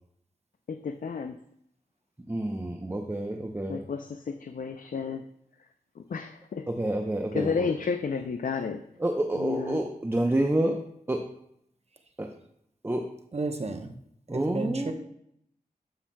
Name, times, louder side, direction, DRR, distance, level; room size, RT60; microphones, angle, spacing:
voice 1, 0.7-1.4 3.7-5.3 6.0-6.7 7.3-8.9 9.4-9.8, left 5 dB, 65° left, 8 dB, 0.4 m, -32 dB
voice 2, 2.3-3.8 6.7-7.7 9.0-10.8 11.1-11.3 12.2-12.3 12.8-13.1 14.3-14.9, right 1 dB, 15° right, 2 dB, 0.7 m, -28 dB
voice 3, 13.3-13.9 14.3-14.9, right 3 dB, 45° right, 5 dB, 0.9 m, -32 dB
13.5 x 5.7 x 2.2 m, 0.72 s
wide cardioid pair, 70°, 15 cm